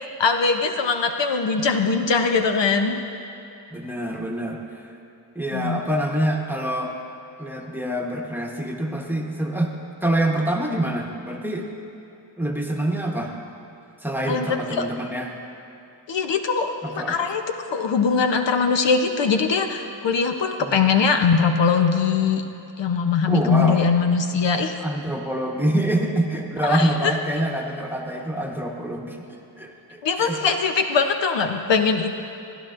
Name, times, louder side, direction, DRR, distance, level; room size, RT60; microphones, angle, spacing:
voice 1, 0.2-3.0 5.5-5.8 14.3-14.9 16.1-17.4 17.7-22.4 22.8-24.8 26.6-27.1 30.0-32.1, left 5 dB, 65° left, 6 dB, 0.7 m, -21 dB
voice 2, 3.7-4.9 5.3-6.9 7.4-9.7 10.0-11.7 12.4-13.4 14.0-15.3 16.8-17.2 20.6-20.9 23.3-23.9 24.8-30.4, right 1 dB, 5° right, 1 dB, 1.0 m, -26 dB
15.0 x 10.0 x 2.5 m, 2.9 s
cardioid pair, 55°, 46 cm